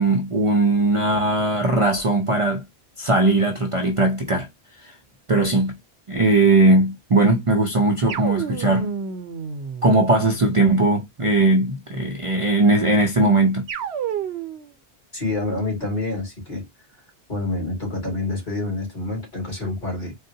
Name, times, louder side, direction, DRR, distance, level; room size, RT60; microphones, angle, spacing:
voice 1, 0.0-2.6 3.0-4.5 4.8-5.0 5.3-5.7 6.1-8.9 9.8-13.7, right 2 dB, 40° right, 0.5 m, -19 dB
sound 1, 8.1-10.6 13.7-14.7, right 7 dB, 70° right, 0.9 m, -30 dB
voice 2, 15.1-16.7 17.3-20.2, left 2 dB, 45° left, 2.1 m, -27 dB
3.9 x 2.1 x 2.6 m
omnidirectional pair, 1.1 m